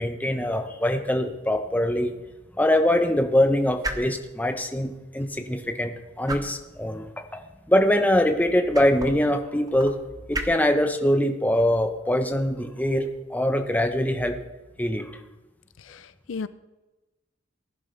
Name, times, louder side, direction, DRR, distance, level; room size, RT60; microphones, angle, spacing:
voice 1, 0.0-2.1 2.6-10.0 10.3-14.4 14.8-15.1, left 1 dB, 10° left, 5 dB, 1.0 m, -23 dB
sound 1, 0.8-14.4, right 2 dB, 20° right, 1.0 m, -41 dB
voice 2, 15.8-16.5, left 5 dB, 70° left, 14 dB, 0.5 m, -35 dB
19.0 x 11.0 x 3.4 m, 1.1 s
head